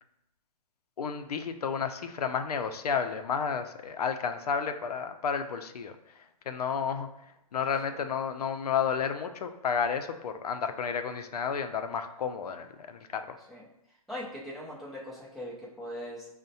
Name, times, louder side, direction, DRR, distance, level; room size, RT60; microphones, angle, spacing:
voice 1, 1.0-7.1 7.5-13.4, left 6 dB, 90° left, 8 dB, 0.4 m, -31 dB
voice 2, 14.1-16.3, equal, ahead, -7 dB, 0.5 m, -40 dB
6.1 x 2.1 x 2.7 m, 0.82 s
hypercardioid pair, 150°, 19 cm